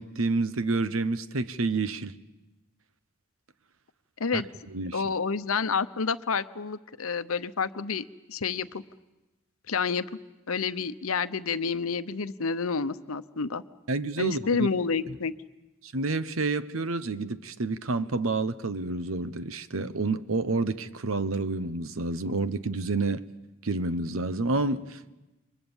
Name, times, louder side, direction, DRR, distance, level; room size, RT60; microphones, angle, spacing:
voice 1, 0.0-2.1 4.3-4.4 4.7-5.1 13.9-14.7 15.8-23.2 23.6-25.1, right 3 dB, 75° right, 1.0 m, -29 dB
voice 2, 4.9-8.8 9.7-10.0 10.5-13.6 14.2-15.3, left 5 dB, 85° left, 0.9 m, -29 dB
29.0 x 24.0 x 7.2 m
head